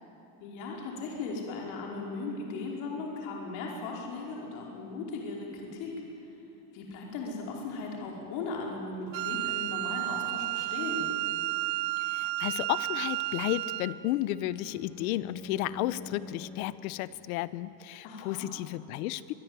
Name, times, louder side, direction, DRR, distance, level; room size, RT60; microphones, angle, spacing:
voice 1, 0.4-6.0 6.7-11.1 18.0-18.5, left 3 dB, 50° left, -1 dB, 5.1 m, -37 dB
Wind instrument woodwind instrument, 9.1-14.0, right 19 dB, 40° right, 0.6 m, -32 dB
voice 2, 12.0-19.3, left 15 dB, 65° left, 17 dB, 0.9 m, -33 dB
Bowed string instrument, 13.7-16.9, left 3 dB, 5° left, 1.4 m, -47 dB
25.0 x 21.0 x 9.1 m, 2.9 s
cardioid pair, 175°, 46 cm